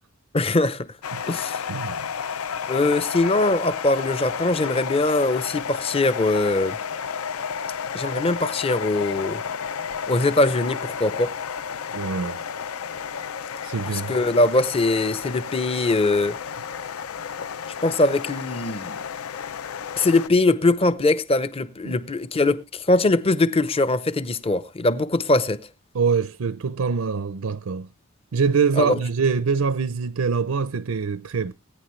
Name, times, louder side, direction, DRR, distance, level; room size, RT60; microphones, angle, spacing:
voice 1, 0.3-0.9 1.3-1.6 2.7-6.8 7.9-9.4 10.1-11.4 13.9-16.4 17.8-19.0 20.0-25.7 28.8-29.0, left 2 dB, 25° left, 0.6 m, -22 dB
sound 1, 1.0-20.3, left 7 dB, 85° left, 0.5 m, -32 dB
voice 2, 1.7-2.1 11.9-12.4 13.6-14.1 21.8-22.0 25.9-27.9 28.3-31.5, right 5 dB, 90° right, 0.5 m, -24 dB
19.5 x 9.4 x 3.1 m
head